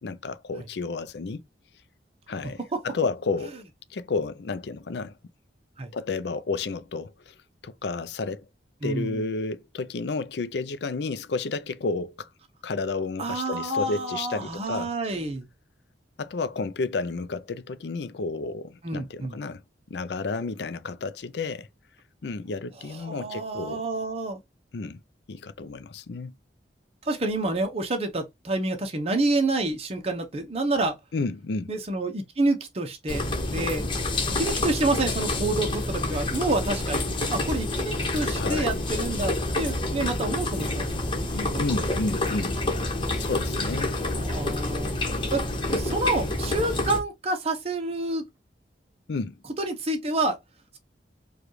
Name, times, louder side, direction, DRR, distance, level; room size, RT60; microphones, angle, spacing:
voice 1, 0.0-1.4 2.3-2.6 2.8-3.6 3.9-5.2 5.9-7.3 7.6-8.5 8.8-12.3 12.6-14.9 16.2-19.6 19.9-21.7 22.2-23.8 24.7-25.0 25.3-26.3 31.1-31.7 38.3-38.8 41.6-42.6 43.2-43.9 49.1-49.4, left 3 dB, 70° left, 0.5 m, -31 dB
voice 2, 8.8-9.3 13.2-15.5 18.8-19.4 22.9-24.4 27.0-31.0 31.7-33.2 33.5-33.9 34.4-41.8 44.0-44.9 45.3-48.3 49.6-50.4, right 2 dB, 35° right, 0.8 m, -28 dB
sound 1, 33.1-47.0, left 2 dB, 30° left, 1.1 m, -28 dB
4.9 x 2.4 x 3.1 m
head